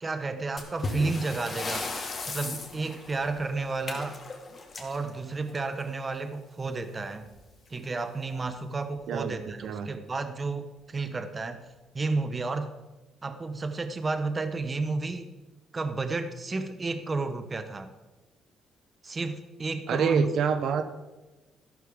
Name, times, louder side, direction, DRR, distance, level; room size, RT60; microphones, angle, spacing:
voice 1, 0.0-1.9 2.3-4.2 4.8-7.3 7.7-11.7 11.9-12.7 13.2-15.3 15.7-17.9 19.0-20.3, right 3 dB, 25° right, 9 dB, 0.8 m, -31 dB
sound 1, 0.6-5.9 7.2-7.4 7.7-7.8 8.4-8.5 9.2-9.5, left 3 dB, 30° left, 1.8 m, -37 dB
voice 2, 9.1-9.9 19.9-20.8, right 7 dB, 65° right, 10 dB, 0.9 m, -27 dB
13.0 x 12.0 x 3.7 m, 1.1 s
cardioid pair, 130°, 0 cm